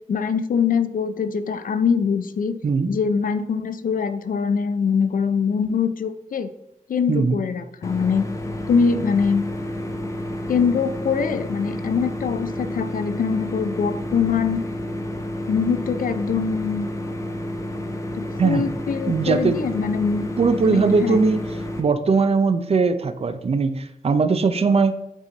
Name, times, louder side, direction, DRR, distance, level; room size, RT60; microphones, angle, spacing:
voice 1, 0.1-2.6 2.9-6.5 6.9-8.3 8.7-9.5 10.5-14.6 15.5-16.9 18.1-20.4 20.7-21.2, left 6 dB, 70° left, 11 dB, 0.5 m, -23 dB
sound 1, 7.8-21.8, left 1 dB, 20° left, 0.7 m, -30 dB
voice 2, 19.1-19.6 20.4-21.4 21.8-25.0, right 4 dB, 45° right, 11 dB, 0.5 m, -20 dB
9.1 x 4.1 x 4.0 m, 0.85 s
wide cardioid pair, 155°, 15 cm